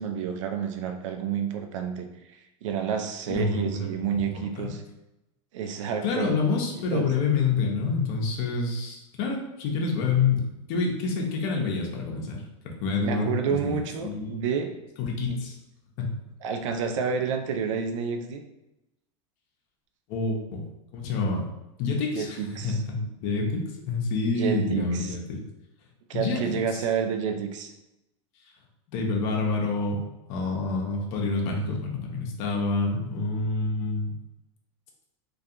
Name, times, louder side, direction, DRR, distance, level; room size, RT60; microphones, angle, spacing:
voice 1, 0.0-4.8 5.5-6.4 6.9-7.1 13.0-14.8 15.3-15.4 16.4-18.4 22.1-22.8 24.2-25.2 26.1-27.7, right 7 dB, 80° right, 6 dB, 0.4 m, -29 dB
voice 2, 3.3-4.7 6.0-14.4 15.0-15.6 16.0-16.1 20.1-20.6 20.9-21.4 21.8-25.4 26.1-26.6 28.9-30.0 30.3-34.1, left 4 dB, 55° left, 0 dB, 0.7 m, -28 dB
2.3 x 2.3 x 2.7 m, 0.93 s
supercardioid pair, 115°, 16 cm